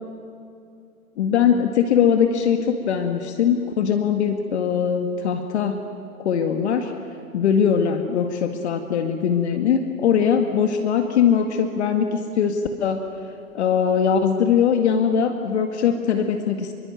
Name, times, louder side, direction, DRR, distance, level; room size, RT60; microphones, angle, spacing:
voice 1, 1.2-5.8 6.2-6.9 7.3-13.0 13.5-16.7, left 7 dB, 50° left, 6 dB, 2.1 m, -21 dB
27.0 x 23.5 x 9.2 m, 2.5 s
hypercardioid pair, 140°, 44 cm